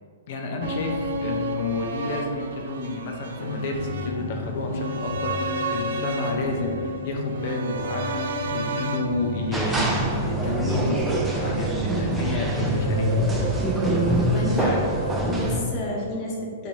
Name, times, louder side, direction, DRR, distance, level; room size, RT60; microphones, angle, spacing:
voice 1, 0.3-8.2 8.5-13.2 14.5-14.8 15.3-15.4, left 2 dB, 55° left, 2 dB, 0.6 m, -30 dB
sound 1, 0.6-10.7 11.0-11.1, right 2 dB, 60° right, 0.4 m, -32 dB
sound 2, 3.3-15.2, left 1 dB, 85° left, 0.8 m, -33 dB
sound 3, 9.5-15.6, right 1 dB, 10° right, 0.6 m, -24 dB
voice 2, 14.2-16.7, left 1 dB, 35° left, -3 dB, 1.3 m, -31 dB
4.3 x 2.8 x 4.4 m, 2.1 s
figure-of-eight pair, 115°, 0 cm